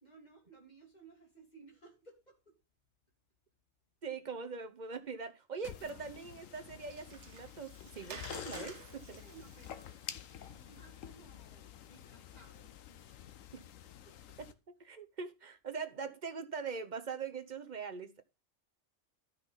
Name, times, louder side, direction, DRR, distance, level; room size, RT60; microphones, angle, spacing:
voice 1, 0.0-2.6 9.0-13.4 13.8-14.4, right 4 dB, 30° left, 2.9 m, -60 dB
voice 2, 4.0-9.2 13.5-13.6 14.8-18.2, right 5 dB, 40° right, 0.8 m, -42 dB
sound 1, 5.6-14.5, left 10 dB, 75° left, 1.1 m, -49 dB
Water, 5.9-11.3, right 6 dB, 60° right, 1.2 m, -54 dB
12.5 x 5.7 x 4.0 m
omnidirectional pair, 1.4 m